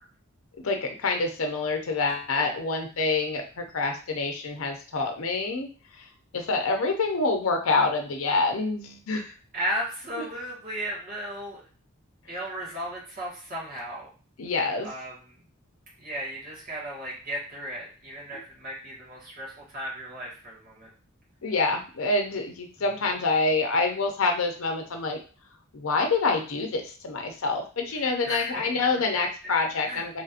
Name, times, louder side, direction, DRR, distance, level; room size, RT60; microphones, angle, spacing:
voice 1, 0.6-6.0 6.3-9.3 10.2-10.3 14.4-14.9 18.3-18.4 21.4-25.2 25.7-30.2, left 3 dB, 75° left, 4 dB, 0.6 m, -27 dB
voice 2, 9.5-11.6 12.3-14.1 14.8-15.4 16.0-20.9 28.0-29.0 29.4-29.5 29.8-30.0, equal, 45° right, -5 dB, 1.4 m, -35 dB
3.1 x 2.8 x 2.5 m, 0.38 s
head